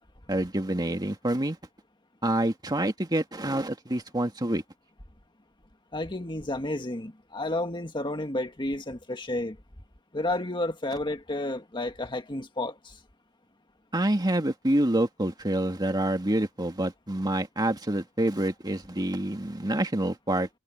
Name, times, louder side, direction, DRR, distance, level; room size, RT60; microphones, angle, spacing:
voice 1, 0.3-1.6 2.2-4.6 13.9-20.5, right 1 dB, 20° right, 2.1 m, -27 dB
voice 2, 5.9-9.6 10.1-13.0, left 1 dB, 20° left, 1.8 m, -31 dB
head